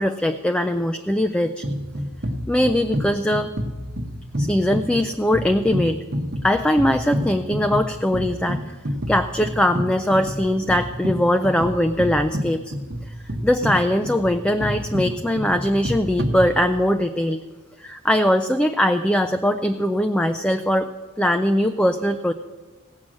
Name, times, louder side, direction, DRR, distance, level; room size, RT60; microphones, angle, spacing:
voice 1, 0.0-1.6 2.5-3.5 4.4-6.0 6.4-8.8 9.1-12.6 13.4-17.4 17.8-20.9 21.2-22.3, left 1 dB, 5° left, 7 dB, 0.3 m, -21 dB
sound 1, 1.6-17.0, equal, 45° right, 1.0 m, -29 dB
17.0 x 7.5 x 6.3 m, 1.3 s
head